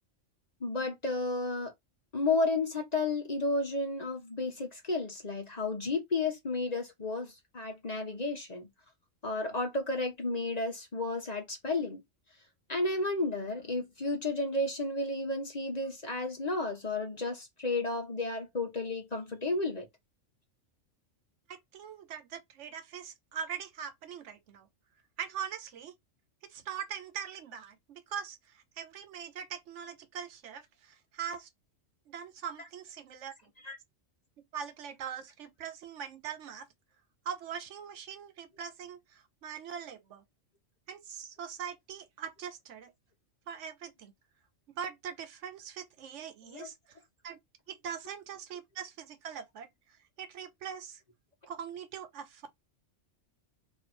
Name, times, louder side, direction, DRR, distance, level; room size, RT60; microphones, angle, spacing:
voice 1, 0.6-1.7 2.1-8.7 9.2-12.0 12.7-19.9 33.6-33.8 46.5-46.7, left 2 dB, 35° left, 0.9 m, -32 dB
voice 2, 21.5-24.7 25.2-25.9 26.5-31.5 32.1-33.3 34.5-36.7 37.3-40.2 40.9-42.9 43.5-44.1 44.7-47.0 47.2-47.4 47.7-49.7 50.2-51.0 51.5-52.5, right 8 dB, 70° right, 0.9 m, -42 dB
3.0 x 2.6 x 4.2 m
omnidirectional pair, 1.3 m